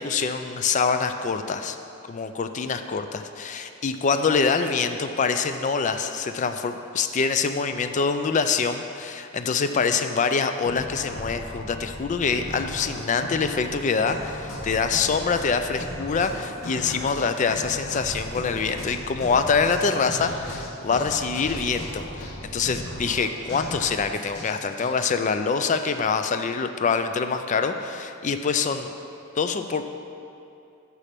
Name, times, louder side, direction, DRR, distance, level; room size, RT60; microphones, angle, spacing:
voice 1, 0.0-1.8 2.1-28.9 29.4-29.8, left 5 dB, 35° left, 8 dB, 0.4 m, -25 dB
sound 1, 10.6-24.9, equal, 90° left, 1.2 m, -37 dB
6.5 x 6.3 x 5.9 m, 2.7 s
head